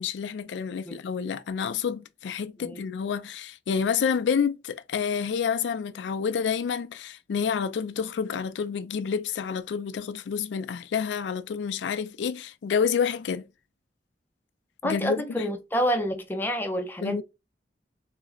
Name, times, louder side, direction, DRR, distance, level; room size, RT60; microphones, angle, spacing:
voice 1, 0.0-13.4 14.8-15.5 17.0-17.2, left 6 dB, 85° left, 0.3 m, -29 dB
voice 2, 14.8-17.2, equal, 10° left, 0.5 m, -28 dB
3.8 x 2.0 x 2.3 m
head